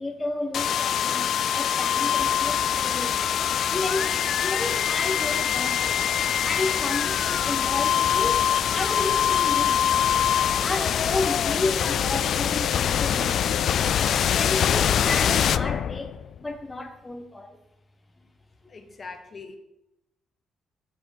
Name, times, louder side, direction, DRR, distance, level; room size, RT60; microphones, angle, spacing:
voice 1, 0.0-3.3 3.7-6.0 6.4-10.1 10.6-13.9 14.2-17.6 18.2-18.3 18.6-18.7, left 2 dB, 15° left, 1.1 m, -32 dB
sound 1, 0.5-16.4, left 9 dB, 65° left, 0.3 m, -24 dB
sound 2, 2.2-14.3, right 3 dB, 35° right, 1.0 m, -44 dB
voice 2, 18.7-19.6, left 4 dB, 40° left, 1.4 m, -42 dB
7.2 x 7.2 x 5.0 m
cardioid pair, 90°, 0 cm